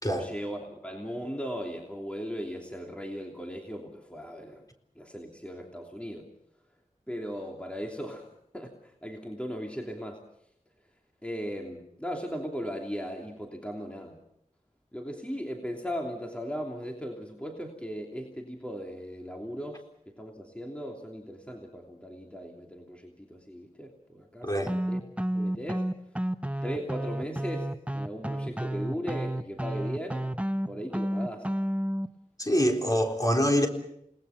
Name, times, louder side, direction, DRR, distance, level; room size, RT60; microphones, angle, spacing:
voice 1, 0.0-4.6 5.0-6.3 7.1-8.3 8.5-10.2 11.2-14.2 14.9-19.8 20.1-25.0 25.3-25.9 26.6-30.3 30.7-31.5, equal, 10° left, 1 dB, 3.0 m, -37 dB
voice 2, 24.4-24.7 32.4-33.7, equal, 25° left, 3 dB, 3.9 m, -25 dB
sound 1, 24.7-32.1, right 1 dB, 10° right, 0.9 m, -31 dB
29.5 x 19.5 x 5.9 m, 0.74 s
wide cardioid pair, 50°, 14 cm